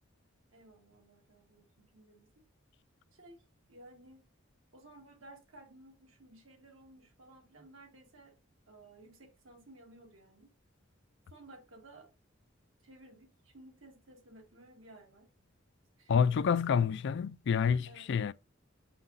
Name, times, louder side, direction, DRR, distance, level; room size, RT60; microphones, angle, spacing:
voice 1, 0.5-2.5 3.1-3.4 3.7-4.3 4.7-8.4 8.7-10.5 11.3-12.1 12.8-15.3 16.0-16.2 17.9-18.1, right 2 dB, 75° right, 1.9 m, -56 dB
voice 2, 16.1-18.3, left 6 dB, 60° left, 0.4 m, -28 dB
6.4 x 5.8 x 2.6 m
head